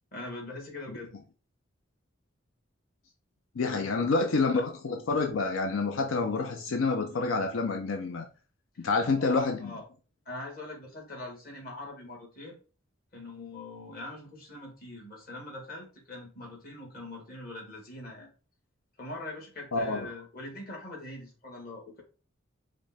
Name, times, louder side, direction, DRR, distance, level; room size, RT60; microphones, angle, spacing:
voice 1, 0.1-1.1 3.7-4.0 9.1-9.8 10.2-12.6 13.1-18.3 19.0-22.0, left 2 dB, 45° left, 1.6 m, -42 dB
voice 2, 3.6-8.3 8.8-9.7 19.7-20.1, left 3 dB, 90° left, 0.5 m, -28 dB
5.0 x 2.2 x 4.1 m
head